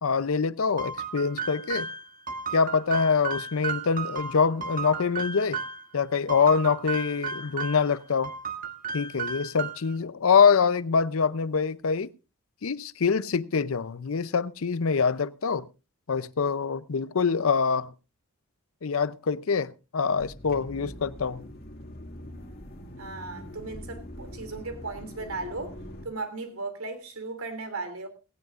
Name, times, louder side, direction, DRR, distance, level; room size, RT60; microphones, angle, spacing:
voice 1, 0.0-1.9 2.5-5.6 5.9-8.3 8.9-12.1 12.6-15.7 16.1-17.9 18.8-21.4, left 5 dB, 70° left, 0.6 m, -25 dB
sound 1, 0.8-5.9 6.3-7.9 8.2-10.0, right 5 dB, 40° right, 1.3 m, -34 dB
sound 2, 20.2-26.1, left 1 dB, 45° left, 2.1 m, -43 dB
voice 2, 23.0-25.8 26.0-28.1, right 3 dB, 75° right, 2.9 m, -36 dB
17.5 x 17.0 x 2.5 m
head